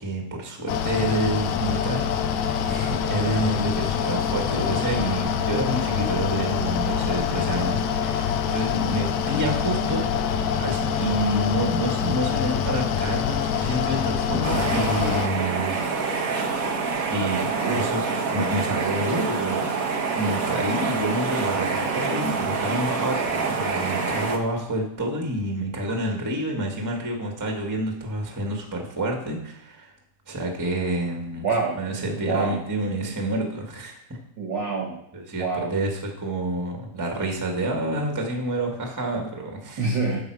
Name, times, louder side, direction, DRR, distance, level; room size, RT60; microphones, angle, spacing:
voice 1, 0.0-2.0 2.6-10.0 10.6-16.0 17.1-29.9 30.3-31.5 31.7-34.2 35.1-39.8, right 1 dB, 10° right, 1 dB, 0.8 m, -28 dB
Mechanical fan, 0.7-15.3, left 7 dB, 80° left, 2.1 m, -25 dB
sound 1, 14.4-24.4, right 4 dB, 80° right, 0.7 m, -26 dB
voice 2, 31.4-31.9 32.2-32.6 34.4-35.0 35.4-35.7 39.8-40.2, right 4 dB, 50° right, 1 dB, 1.5 m, -26 dB
11.0 x 7.4 x 4.8 m, 0.79 s
omnidirectional pair, 3.4 m